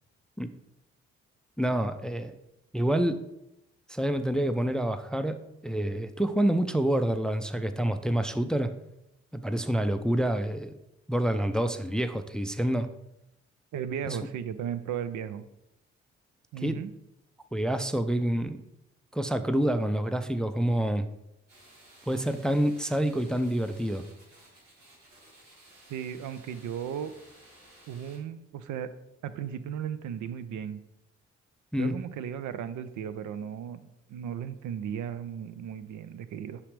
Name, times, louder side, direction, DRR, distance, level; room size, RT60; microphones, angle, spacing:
voice 1, 1.6-2.4 2.7-3.2 3.9-8.7 9.3-10.7 11.1-12.9 14.1-14.2 16.6-16.8 17.5-18.6 19.1-21.1 22.1-24.0 31.7-31.9, right 1 dB, ahead, 10 dB, 0.4 m, -27 dB
voice 2, 13.7-15.4 16.5-16.9 25.9-27.1 27.9-28.9 29.2-30.8 31.8-33.8 34.1-36.6, right 8 dB, 65° right, 12 dB, 0.5 m, -35 dB
sound 1, 21.5-28.2, right 1 dB, 85° right, 1.9 m, -56 dB
6.1 x 5.7 x 3.2 m, 0.87 s
hypercardioid pair, 45°, 32 cm